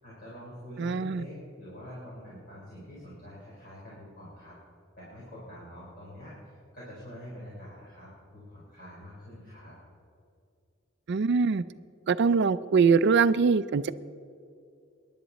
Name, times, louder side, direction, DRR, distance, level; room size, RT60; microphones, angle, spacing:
voice 1, 0.0-4.6 5.0-9.7, equal, 50° left, -7 dB, 4.1 m, -46 dB
voice 2, 0.8-1.2 11.1-11.6 12.1-13.9, right 5 dB, 60° right, 15 dB, 0.4 m, -23 dB
23.0 x 11.0 x 4.1 m, 2.5 s
head